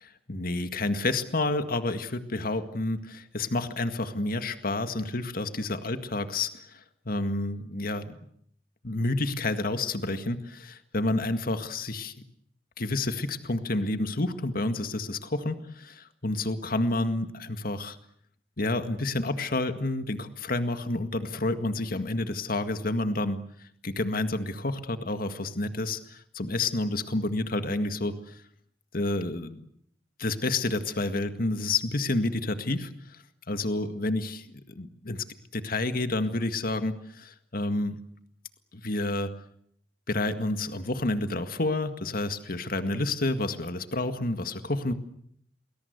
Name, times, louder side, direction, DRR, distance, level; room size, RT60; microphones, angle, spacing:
voice 1, 0.3-8.2 8.8-12.1 12.8-18.0 18.6-23.4 23.8-28.4 28.9-29.7 30.2-33.2 33.5-34.5 34.8-35.2 35.5-38.0 38.8-39.3 40.1-44.9, left 2 dB, 55° left, 9 dB, 1.9 m, -29 dB
29.5 x 21.5 x 8.1 m, 0.68 s
head